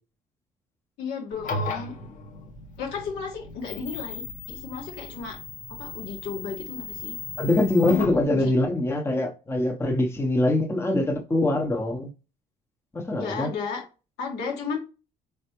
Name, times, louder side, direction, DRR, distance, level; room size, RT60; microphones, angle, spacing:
voice 1, 1.0-2.0 2.8-5.4 5.8-7.1 8.3-8.5 13.2-13.8 14.2-14.8, left 5 dB, 85° left, 1.5 m, -33 dB
sound 1, 1.3-8.2, left 3 dB, 50° left, 0.9 m, -36 dB
voice 2, 7.4-12.1 12.9-13.5, left 1 dB, 15° left, 0.7 m, -23 dB
4.1 x 3.3 x 2.9 m
cardioid pair, 110°, 17 cm